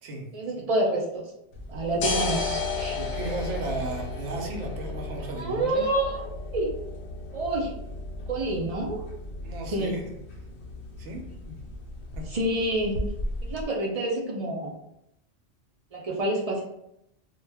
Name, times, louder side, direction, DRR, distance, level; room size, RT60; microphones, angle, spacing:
voice 1, 0.3-1.2 1.7-3.0 5.4-6.7 7.3-7.7 8.3-9.0 9.7-9.9 12.3-13.0 13.5-14.7 15.9-16.6, right 1 dB, 55° right, -2 dB, 0.4 m, -28 dB
sound 1, 1.5-13.6, left 2 dB, 70° left, 0.8 m, -34 dB
voice 2, 2.9-5.9 9.4-10.0 11.0-11.6 12.2-12.3, right 2 dB, 80° right, 2 dB, 0.9 m, -35 dB
2.3 x 2.1 x 3.3 m, 0.80 s
omnidirectional pair, 1.2 m